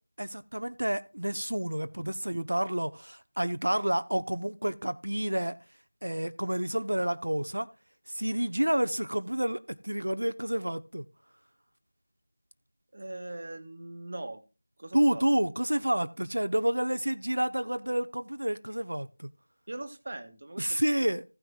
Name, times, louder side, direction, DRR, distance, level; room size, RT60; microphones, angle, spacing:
voice 1, 0.2-5.6 6.0-7.7 8.1-11.1 14.9-19.3 20.6-21.2, right 1 dB, 75° right, 0.9 m, -29 dB
voice 2, 12.9-14.4 14.8-15.3 19.7-20.9, right 2 dB, 45° right, 1.7 m, -41 dB
16.5 x 6.2 x 2.4 m
figure-of-eight pair, 170°, 0 cm